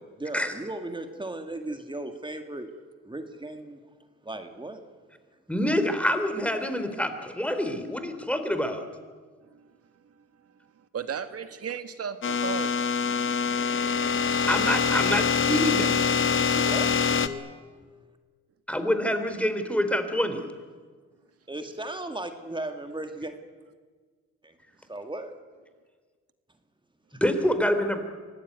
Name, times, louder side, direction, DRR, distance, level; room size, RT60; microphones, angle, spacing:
voice 1, 0.0-2.7 3.1-3.8 4.2-4.8 16.5-16.9 21.5-23.3 24.4-24.5 24.9-25.3, right 2 dB, 15° right, 7 dB, 2.0 m, -36 dB
voice 2, 5.5-8.8 14.5-15.9 18.7-20.4 27.2-28.0, equal, 5° left, 8 dB, 3.4 m, -26 dB
voice 3, 10.8-12.7, right 7 dB, 50° right, 10 dB, 2.0 m, -35 dB
sound 1, 12.2-17.3, left 6 dB, 40° left, 1.4 m, -24 dB
24.5 x 18.0 x 9.5 m, 1.5 s
cardioid pair, 90°, 30 cm